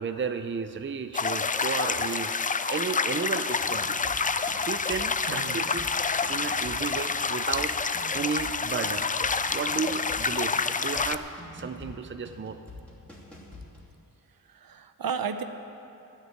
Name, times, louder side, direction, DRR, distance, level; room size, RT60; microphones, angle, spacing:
voice 1, 0.0-2.3 2.7-4.0 4.6-5.9 6.3-7.7 8.1-9.1 9.5-12.6, right 5 dB, 35° right, 8 dB, 0.5 m, -33 dB
sound 1, 1.1-11.2, left 4 dB, 25° left, 0.3 m, -28 dB
sound 2, 3.6-13.9, left 1 dB, 5° left, 2.7 m, -47 dB
voice 2, 5.3-5.6 6.4-6.6 8.1-8.2 14.4-15.4, right 6 dB, 70° right, 9 dB, 0.7 m, -34 dB
12.0 x 6.7 x 9.2 m, 2.8 s
wide cardioid pair, 80°, 36 cm